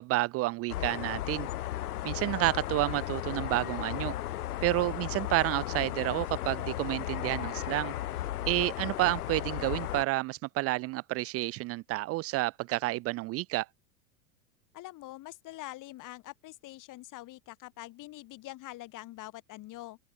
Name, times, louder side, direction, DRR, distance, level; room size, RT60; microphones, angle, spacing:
voice 1, 0.0-1.5 2.0-4.1 4.6-7.9 8.5-13.7, right 19 dB, 30° right, 0.6 m, -30 dB
sound 1, 0.7-10.0, left 14 dB, 65° left, 5.1 m, -35 dB
voice 2, 14.7-20.0, left 17 dB, 40° left, 4.3 m, -45 dB
open air
figure-of-eight pair, 90°, 48 cm